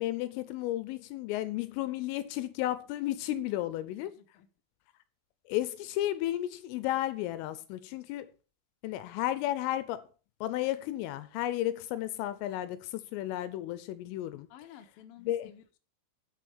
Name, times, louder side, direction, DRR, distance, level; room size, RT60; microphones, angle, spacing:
voice 1, 0.0-4.1 5.5-8.3 8.8-10.1 10.4-14.5 15.3-15.5, left 14 dB, 80° left, 3.2 m, -33 dB
voice 2, 3.8-4.5 14.5-15.8, left 10 dB, 60° left, 2.6 m, -53 dB
9.7 x 9.1 x 6.2 m
omnidirectional pair, 5.9 m